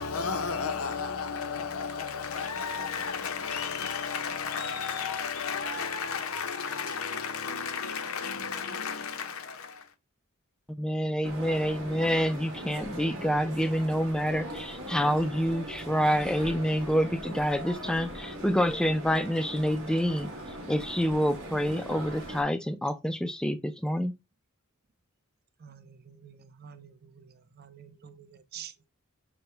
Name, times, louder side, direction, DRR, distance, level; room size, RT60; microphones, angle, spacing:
voice 1, 0.0-9.8, left 6 dB, 80° left, 0.8 m, -33 dB
voice 2, 10.8-20.3 20.7-24.1, equal, 5° left, 0.3 m, -27 dB
sound 1, 11.2-22.4, right 1 dB, 70° right, 1.4 m, -40 dB
voice 3, 25.6-28.9, right 8 dB, 50° right, 0.5 m, -48 dB
6.0 x 2.2 x 3.2 m
head